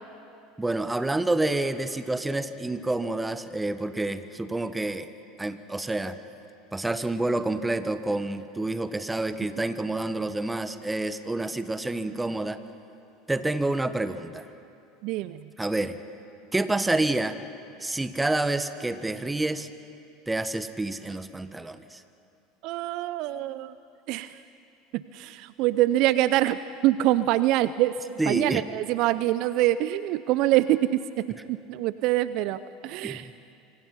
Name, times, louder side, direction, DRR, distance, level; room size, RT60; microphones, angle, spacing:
voice 1, 0.6-5.1 5.4-6.2 6.7-12.6 13.3-14.5 15.6-16.0 16.5-17.4 17.8-19.7 20.3-22.0 28.2-28.6 33.0-33.3, right 2 dB, 10° right, 11 dB, 1.4 m, -28 dB
voice 2, 15.0-15.5 22.6-23.7 24.1-24.4 24.9-26.6 26.8-31.0 31.5-33.3, right 15 dB, 55° right, 15 dB, 0.6 m, -25 dB
26.5 x 24.5 x 5.6 m, 2.6 s
hypercardioid pair, 75°, 0 cm